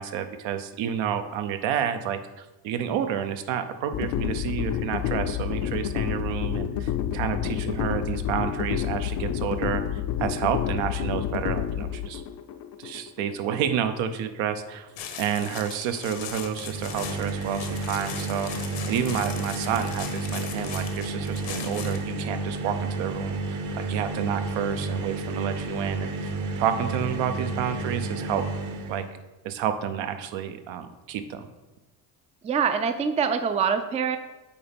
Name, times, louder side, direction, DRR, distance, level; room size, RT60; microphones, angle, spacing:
voice 1, 0.0-12.2 12.8-14.9 15.2-28.4 28.9-29.1 29.4-31.5, right 9 dB, 80° right, 8 dB, 0.7 m, -30 dB
sound 1, 3.9-14.0, left 10 dB, 50° left, 0.5 m, -29 dB
sound 2, 15.0-22.1, left 8 dB, 75° left, 1.0 m, -39 dB
sound 3, 16.5-29.1, right 3 dB, 40° right, 0.8 m, -31 dB
voice 2, 32.4-34.2, right 6 dB, 15° right, 9 dB, 0.3 m, -24 dB
8.4 x 2.9 x 5.2 m, 1.1 s
cardioid pair, 105°, 46 cm